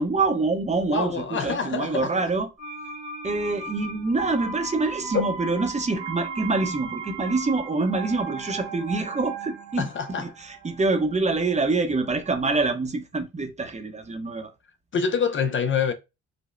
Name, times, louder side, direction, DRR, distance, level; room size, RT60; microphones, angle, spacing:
voice 1, 0.0-2.5 3.2-14.5, right 3 dB, 25° right, 0.7 m, -26 dB
voice 2, 0.9-2.2 9.8-10.3 14.9-15.9, left 6 dB, 40° left, 0.5 m, -26 dB
sound 1, 2.6-12.3 12.6-12.7, right 4 dB, 80° right, 1.0 m, -37 dB
5.0 x 2.0 x 2.5 m
cardioid pair, 90°, 30 cm